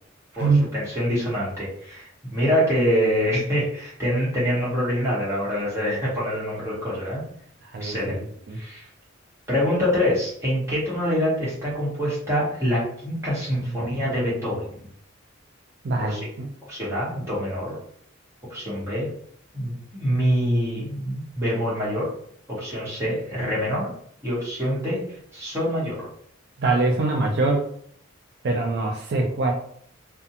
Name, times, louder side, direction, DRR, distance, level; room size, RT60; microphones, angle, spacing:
voice 1, 0.4-7.2 7.8-8.2 8.5-8.8 9.5-14.9 16.1-16.3 16.7-17.8 18.5-19.1 19.5-22.1 22.5-23.9 24.2-25.0 25.3-26.0, equal, 15° right, -8 dB, 1.1 m, -25 dB
voice 2, 7.7-8.2 8.5-8.6 13.8-13.9 15.8-16.5 26.6-27.7 28.4-29.5, right 3 dB, 55° right, 1 dB, 0.3 m, -23 dB
2.5 x 2.2 x 2.8 m, 0.64 s
head